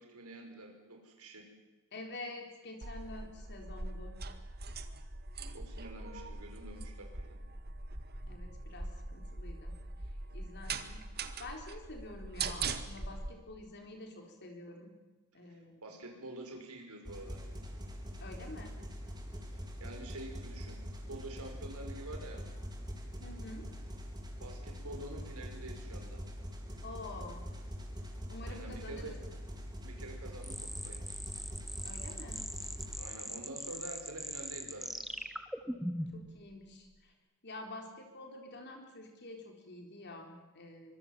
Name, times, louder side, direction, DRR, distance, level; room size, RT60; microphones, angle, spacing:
voice 1, 0.0-1.5 5.5-7.4 15.5-17.4 19.5-20.8 21.1-22.4 24.4-26.2 28.4-29.2 29.8-31.0 33.0-35.1, right 1 dB, 85° right, 3 dB, 5.5 m, -47 dB
voice 2, 1.9-4.2 8.3-9.8 10.3-11.0 11.4-14.9 15.3-15.8 18.2-18.8 23.2-23.7 26.8-27.5 28.3-29.1 31.8-32.5 36.1-37.1 37.4-41.0, left 2 dB, 50° left, 2 dB, 4.0 m, -48 dB
sound 1, 2.8-13.3, right 4 dB, 45° right, 1.9 m, -42 dB
sound 2, 17.1-33.0, equal, 20° right, 4.4 m, -44 dB
sound 3, 30.4-36.3, equal, ahead, 1.6 m, -41 dB
24.5 x 23.5 x 7.4 m, 1.2 s
head